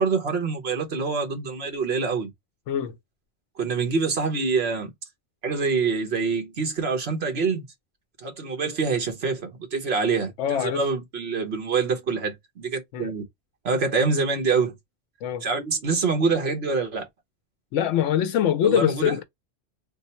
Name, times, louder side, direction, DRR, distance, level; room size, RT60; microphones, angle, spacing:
voice 1, 0.0-2.3 3.6-4.9 5.4-7.7 8.2-13.2 13.6-14.7 15.4-17.1 18.6-19.2, right 4 dB, 60° right, 1.4 m, -25 dB
voice 2, 2.7-3.0 10.4-10.8 12.9-13.1 15.2-15.5 17.7-19.2, left 10 dB, 85° left, 0.9 m, -23 dB
3.5 x 2.0 x 4.2 m
omnidirectional pair, 1.2 m